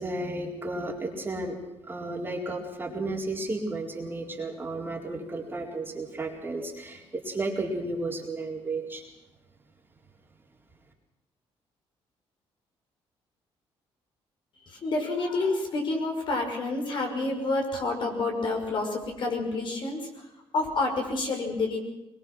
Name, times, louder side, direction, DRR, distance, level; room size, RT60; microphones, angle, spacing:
voice 1, 0.0-1.6 1.8-9.1, right 2 dB, 20° right, -1 dB, 4.1 m, -33 dB
voice 2, 14.6-20.3 20.5-21.8, left 2 dB, 50° left, 2 dB, 5.7 m, -29 dB
22.5 x 21.5 x 6.2 m, 1.0 s
cardioid pair, 115°, 10 cm